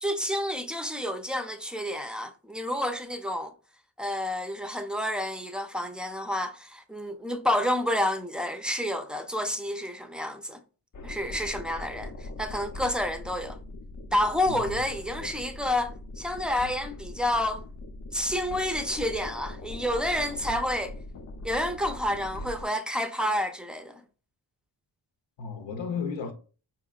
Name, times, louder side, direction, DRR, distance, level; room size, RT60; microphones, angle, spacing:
voice 1, 0.0-3.5 4.0-10.6 11.0-13.6 14.1-17.6 18.1-21.0 21.4-23.9, left 1 dB, ahead, 0.4 m, -29 dB
sound 1, 10.9-22.6, left 2 dB, 45° left, 0.6 m, -41 dB
voice 2, 14.5-15.4 25.4-26.3, left 5 dB, 85° left, 0.7 m, -35 dB
4.3 x 2.8 x 2.3 m
cardioid pair, 60°, 44 cm